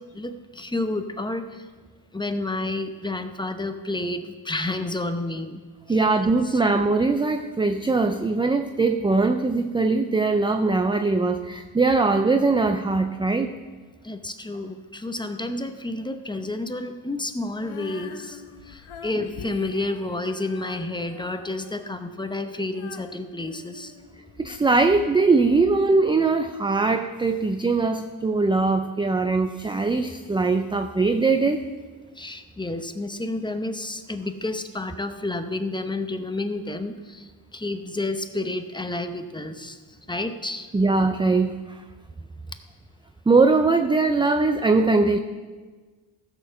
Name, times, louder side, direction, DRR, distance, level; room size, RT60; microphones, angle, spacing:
voice 1, 0.0-1.6 2.1-5.6 5.9-6.0 6.4-6.6 14.0-23.9 32.2-39.8 40.1-40.7, left 2 dB, 10° left, 8 dB, 0.7 m, -30 dB
voice 2, 5.9-13.5 24.4-31.7 40.7-41.8 43.3-45.2, right 3 dB, 10° right, 8 dB, 0.3 m, -21 dB
Female singing, 17.6-24.6, left 7 dB, 85° left, 1.2 m, -43 dB
15.0 x 6.7 x 6.9 m, 1.4 s
cardioid pair, 120°, 49 cm